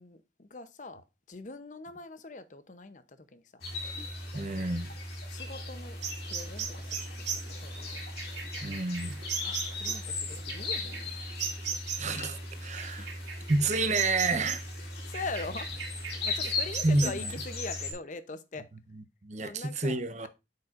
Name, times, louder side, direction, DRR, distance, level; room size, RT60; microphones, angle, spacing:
voice 1, 0.0-3.6 5.3-6.0 6.2-8.0 9.5-11.1 12.9-13.1 15.0-15.7 16.0-18.7 19.4-20.3, left 3 dB, 45° left, 0.7 m, -42 dB
sound 1, 3.6-17.9, left 2 dB, 60° left, 2.3 m, -38 dB
voice 2, 4.3-4.9 8.6-9.2 12.0-13.1 13.5-14.7 16.4-16.5 16.8-17.3 18.9-20.3, right 2 dB, 40° right, 0.8 m, -29 dB
sound 2, 6.0-12.2 12.8-14.8 15.1-17.1, right 7 dB, 85° right, 2.0 m, -37 dB
8.3 x 6.7 x 2.5 m
head